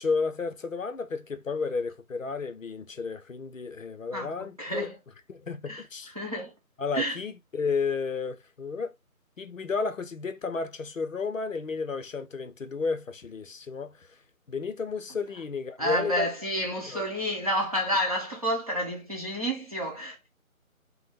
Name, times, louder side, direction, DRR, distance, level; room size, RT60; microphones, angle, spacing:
voice 1, 0.0-4.9 5.3-6.1 6.8-8.9 9.4-14.1 14.5-16.3 16.9-17.1, left 4 dB, 65° left, 0.6 m, -32 dB
voice 2, 4.1-5.0 5.7-5.8 6.1-6.5 6.9-7.2 15.8-20.3, equal, 25° right, 0.8 m, -30 dB
4.1 x 2.1 x 3.3 m
figure-of-eight pair, 155°, 43 cm